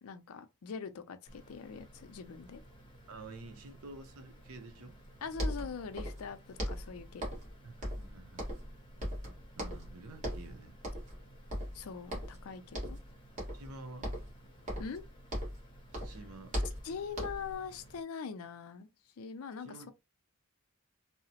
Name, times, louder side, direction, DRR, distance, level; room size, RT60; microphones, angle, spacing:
voice 1, 0.0-2.6 5.2-7.3 11.7-13.0 14.8-15.0 16.8-18.9 19.2-19.9, left 5 dB, 70° left, 0.4 m, -42 dB
sound 1, 1.3-18.0, right 1 dB, 25° left, 0.7 m, -56 dB
voice 2, 3.1-5.0 7.6-8.5 9.6-10.8 13.5-14.1 15.9-16.6 19.6-19.9, right 2 dB, 75° right, 0.7 m, -49 dB
sound 2, 5.0-5.1 5.3-6.3 6.6-7.5 7.8-8.7 9.0-9.9 10.2-10.5 10.8-11.2 11.5-12.4 12.7-13.1 13.4-13.7 14.0-15.7 15.9-17.5, equal, 35° right, 1.1 m, -38 dB
2.8 x 2.0 x 2.8 m
head